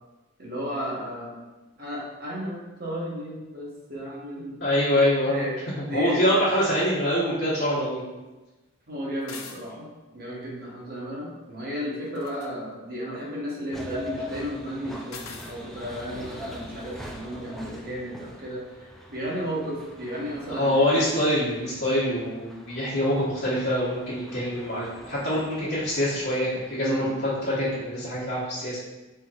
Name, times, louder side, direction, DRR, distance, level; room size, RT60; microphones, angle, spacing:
voice 1, 0.4-1.4 1.8-4.6 5.2-6.3 8.9-18.6 19.1-21.0 26.8-27.2, equal, 45° right, -5 dB, 1.1 m, -33 dB
voice 2, 4.6-5.5 5.9-8.2 20.5-28.8, equal, 55° left, -12 dB, 1.2 m, -25 dB
sound 1, 9.2-9.6 12.0-12.5 15.1-15.6, left 5 dB, 85° left, 0.5 m, -41 dB
sound 2, 13.7-28.2, left 1 dB, ahead, 0.3 m, -43 dB
4.3 x 4.0 x 2.4 m, 1.1 s
head